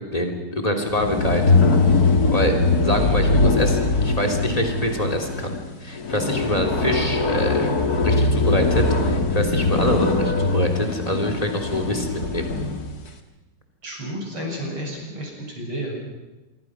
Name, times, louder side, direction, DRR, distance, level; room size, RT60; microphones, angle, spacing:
voice 1, 0.1-1.5 2.3-5.6 5.8-12.5, equal, 15° left, 3 dB, 3.3 m, -25 dB
sound 1, 0.9-12.9, left 3 dB, 45° left, 2.3 m, -21 dB
voice 2, 13.8-15.9, equal, 70° right, 0 dB, 7.7 m, -31 dB
26.0 x 23.0 x 6.2 m, 1.1 s
omnidirectional pair, 2.4 m